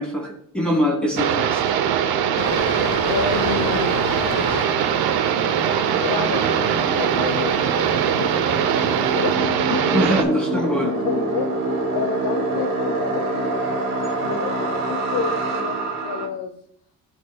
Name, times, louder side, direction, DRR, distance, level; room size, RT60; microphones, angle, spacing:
voice 1, 0.0-1.6 9.9-10.9, equal, 5° left, -4 dB, 2.5 m, -23 dB
sound 1, 1.0-16.3, right 2 dB, 65° right, 2.9 m, -28 dB
sound 2, 1.2-10.2, right 9 dB, 80° right, 0.7 m, -21 dB
sound 3, 2.4-9.4, left 10 dB, 45° left, 0.4 m, -34 dB
voice 2, 3.1-4.0 6.0-16.5, left 6 dB, 75° left, 4 dB, 0.8 m, -30 dB
13.0 x 4.5 x 2.2 m, 0.66 s
cardioid pair, 90°, 37 cm